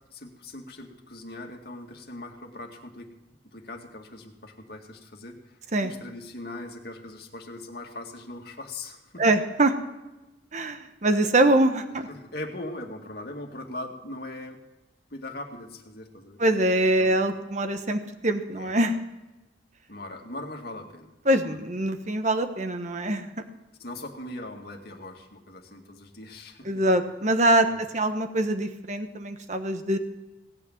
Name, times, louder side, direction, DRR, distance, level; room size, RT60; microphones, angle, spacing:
voice 1, 0.1-3.1 3.5-5.6 5.8-9.2 12.1-14.6 15.1-16.4 17.0-17.2 18.6-18.7 19.9-21.1 21.4-21.6 23.8-26.8 27.7-27.8, left 2 dB, 60° left, 2 dB, 2.1 m, -40 dB
voice 2, 9.2-9.7 10.5-12.1 16.4-18.9 21.2-23.3 26.6-30.0, right 1 dB, 40° right, 7 dB, 1.2 m, -24 dB
17.5 x 8.8 x 7.3 m, 1.1 s
head